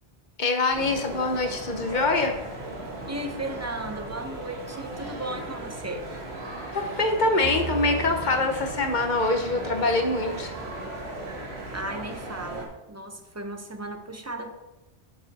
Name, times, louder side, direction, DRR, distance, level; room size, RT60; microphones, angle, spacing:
voice 1, 0.4-2.3 6.7-10.5, left 2 dB, 50° left, 4 dB, 1.0 m, -24 dB
sound 1, 0.7-12.7, right 1 dB, 80° right, 1.7 m, -37 dB
voice 2, 3.1-6.1 11.7-14.5, right 1 dB, 20° right, 5 dB, 0.6 m, -35 dB
sound 2, 7.4-11.2, right 3 dB, 55° right, 0.8 m, -39 dB
9.6 x 4.7 x 4.1 m, 1.0 s
omnidirectional pair, 1.1 m